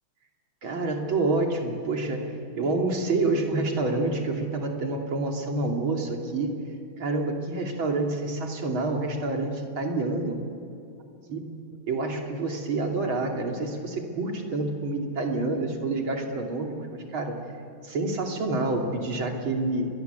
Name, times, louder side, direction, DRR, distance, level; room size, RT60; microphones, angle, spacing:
voice 1, 0.6-6.6 7.0-10.4 11.3-11.5 11.9-17.3 17.8-19.9, right 2 dB, 70° right, 2 dB, 3.7 m, -28 dB
29.5 x 23.5 x 8.2 m, 2.7 s
omnidirectional pair, 2.3 m